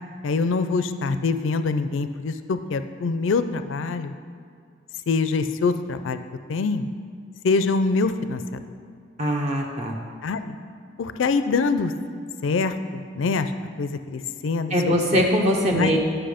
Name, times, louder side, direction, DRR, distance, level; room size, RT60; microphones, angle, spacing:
voice 1, 0.2-4.1 5.1-6.2 6.5-6.9 7.4-8.6 10.2-10.6 11.0-11.9 12.4-13.5 13.8-14.9 15.8-15.9, left 4 dB, 80° left, 10 dB, 0.4 m, -24 dB
voice 2, 9.2-10.0 14.7-16.0, equal, 35° right, 0 dB, 0.8 m, -21 dB
9.9 x 6.0 x 5.0 m, 2.2 s
head